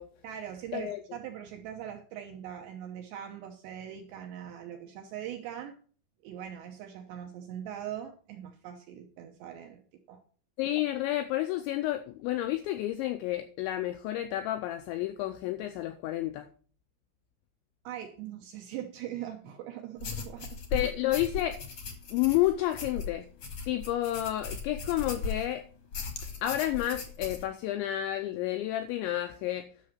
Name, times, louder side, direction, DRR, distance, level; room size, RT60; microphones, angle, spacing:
voice 1, 0.2-5.8 6.2-9.8 10.1-10.2 17.8-20.6, right 10 dB, 75° right, 2.5 m, -41 dB
voice 2, 10.6-16.5 20.7-21.6 22.1-23.3 23.7-25.6 26.4-29.7, left 14 dB, 90° left, 2.6 m, -30 dB
sound 1, 20.0-25.5 25.9-27.4, left 4 dB, 65° left, 1.4 m, -38 dB
11.5 x 6.4 x 5.8 m
omnidirectional pair, 5.9 m